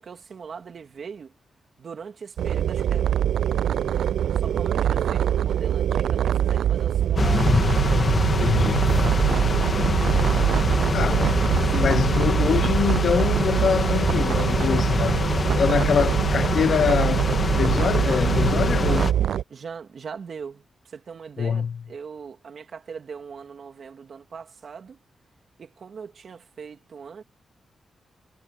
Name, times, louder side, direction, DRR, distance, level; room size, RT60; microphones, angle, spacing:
voice 1, 0.0-1.4 1.8-3.1 3.9-4.0 4.3-8.0 9.8-10.0 11.1-11.7 16.0-16.2 18.8-19.2 19.5-25.0 25.6-27.2, right 6 dB, 50° right, 3.0 m, -40 dB
sound 1, 2.4-19.4, right 10 dB, 85° right, 0.4 m, -23 dB
sound 2, 7.2-19.1, left 4 dB, 35° left, 1.7 m, -25 dB
voice 2, 8.4-9.1 10.9-11.4 11.7-15.2 15.6-19.0 21.4-21.7, left 7 dB, 60° left, 1.1 m, -24 dB
wide cardioid pair, 165°, 0 cm